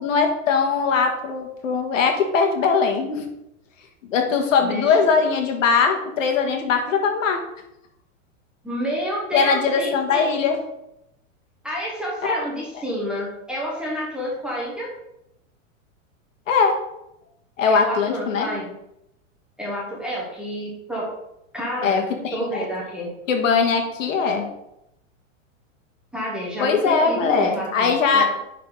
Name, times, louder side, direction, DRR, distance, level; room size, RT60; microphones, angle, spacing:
voice 1, 0.0-3.3 4.0-7.4 9.3-10.6 16.5-16.8 17.6-18.5 21.8-22.6 23.3-24.5 26.6-28.2, left 5 dB, 75° left, 4 dB, 1.7 m, -20 dB
voice 2, 4.6-5.0 8.6-10.3 11.6-14.9 17.7-18.7 19.6-21.1 21.5-22.0 22.3-23.1 26.1-28.2, equal, ahead, -5 dB, 0.8 m, -29 dB
10.0 x 3.8 x 3.8 m, 0.84 s
supercardioid pair, 170°, 39 cm